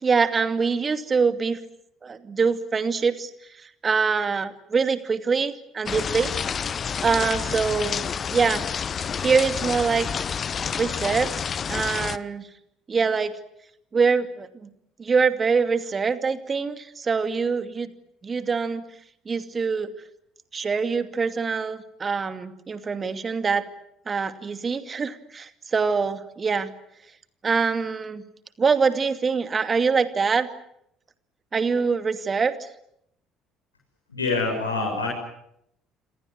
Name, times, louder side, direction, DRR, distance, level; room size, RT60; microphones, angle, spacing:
voice 1, 0.0-1.6 2.0-3.3 3.6-6.3 7.0-8.0 8.3-8.7 9.2-10.1 10.7-11.3 11.7-12.4 12.9-13.3 13.9-14.7 15.0-17.9 18.2-18.8 19.3-19.9 20.5-23.6 24.1-26.7 27.4-28.2 28.6-30.5 31.5-32.6, right 5 dB, 30° right, 10 dB, 2.5 m, -24 dB
sound 1, 5.9-12.2, left 7 dB, 35° left, 1.0 m, -29 dB
voice 2, 34.1-35.1, left 3 dB, 85° left, -1 dB, 7.1 m, -25 dB
27.5 x 26.5 x 7.9 m, 0.76 s
figure-of-eight pair, 55°, 0 cm